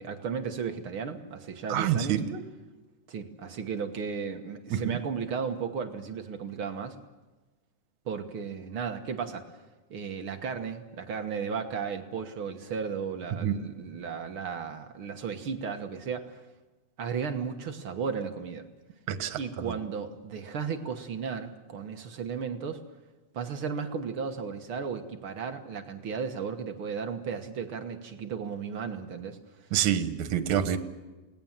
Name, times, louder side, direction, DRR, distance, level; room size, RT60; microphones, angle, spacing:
voice 1, 0.0-2.2 3.1-7.0 8.1-9.5 9.9-16.4 17.0-18.7 19.4-22.8 23.3-29.4, right 6 dB, 55° right, 6 dB, 1.7 m, -35 dB
voice 2, 1.7-2.4 4.7-5.0 13.4-13.6 19.1-19.4 19.7-19.8 29.7-30.8, right 9 dB, 70° right, 10 dB, 2.6 m, -27 dB
29.0 x 19.0 x 7.4 m, 1.2 s
omnidirectional pair, 3.6 m